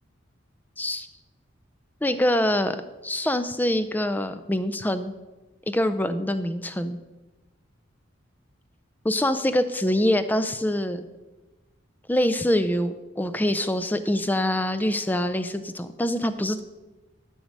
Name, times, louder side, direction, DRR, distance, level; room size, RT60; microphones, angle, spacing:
voice 1, 0.8-1.1 2.0-5.1 5.7-7.0 9.0-11.1 12.1-16.6, left 1 dB, 10° left, 11 dB, 0.4 m, -25 dB
11.0 x 6.3 x 5.3 m, 1.2 s
head